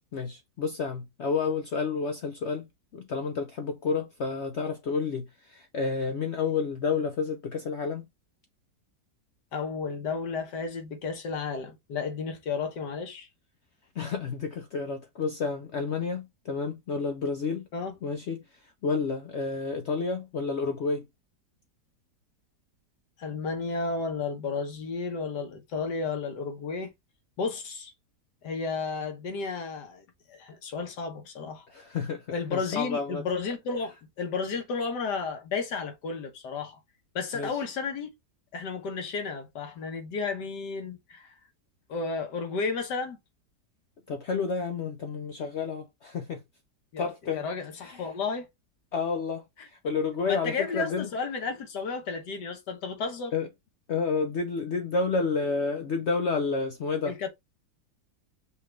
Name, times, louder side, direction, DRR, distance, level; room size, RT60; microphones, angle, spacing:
voice 1, 0.1-2.7 2.9-8.1 14.0-17.7 18.0-18.4 18.8-21.1 31.7-32.2 32.5-33.2 37.3-37.5 44.1-46.4 47.0-47.4 47.8-48.0 48.9-51.1 53.3-53.5 53.9-57.1, left 4 dB, 65° left, 0.6 m, -30 dB
voice 2, 9.5-13.3 17.7-17.9 23.2-26.9 27.4-27.9 28.4-31.6 32.3-36.8 37.1-38.1 38.5-41.3 41.9-43.2 46.9-48.5 49.6-49.7 50.2-53.3 57.1-57.3, left 4 dB, 85° left, 1.7 m, -33 dB
5.6 x 2.4 x 3.2 m
omnidirectional pair, 1.8 m